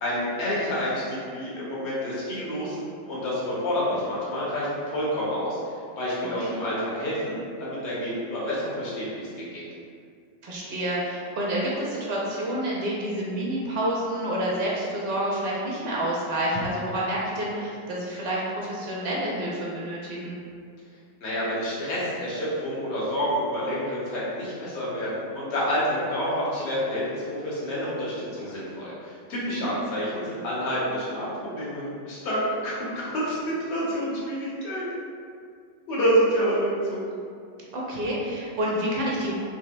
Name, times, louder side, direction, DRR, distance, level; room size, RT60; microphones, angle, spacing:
voice 1, 0.0-2.8 3.1-5.6 6.0-9.3 9.5-9.6 21.2-34.8 35.9-37.0, equal, 45° left, -8 dB, 0.9 m, -28 dB
voice 2, 10.4-20.4 29.4-29.7 37.7-39.3, right 1 dB, 45° right, -4 dB, 0.5 m, -28 dB
2.8 x 2.0 x 2.3 m, 2.3 s
figure-of-eight pair, 90°, 0 cm